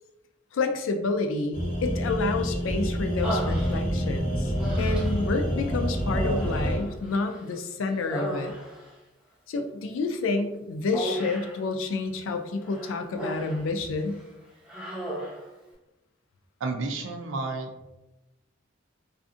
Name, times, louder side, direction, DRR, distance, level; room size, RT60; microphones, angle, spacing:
voice 1, 0.5-8.5 9.5-14.2, left 3 dB, 80° left, 6 dB, 0.4 m, -29 dB
sound 1, 1.5-6.8, equal, 40° left, 0.6 m, -27 dB
Human voice, 3.2-4.1 4.6-5.3 6.1-7.5 7.9-8.9 10.9-11.6 12.6-13.7 14.0-14.2 14.7-15.5, right 1 dB, 5° right, 0.7 m, -35 dB
voice 2, 16.6-17.7, right 3 dB, 75° right, 4 dB, 0.4 m, -31 dB
2.5 x 2.4 x 2.4 m, 0.98 s
head